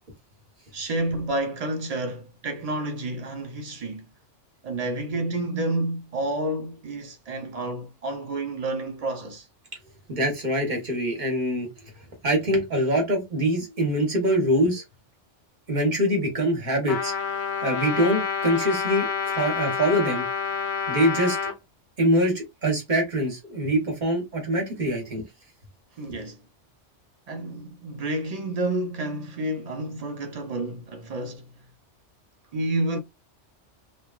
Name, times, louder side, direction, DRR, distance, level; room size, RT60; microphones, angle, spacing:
voice 1, 0.7-4.1 4.6-9.5 26.0-26.4 27.3-31.5 32.5-33.0, right 2 dB, 90° right, 0.3 m, -30 dB
voice 2, 10.1-11.7 12.2-14.8 15.7-17.1 17.6-20.3 20.9-21.5 22.0-25.2, equal, 40° right, 1.0 m, -24 dB
Trumpet, 16.9-21.6, left 6 dB, 55° left, 0.7 m, -28 dB
3.0 x 2.2 x 2.2 m
omnidirectional pair, 1.2 m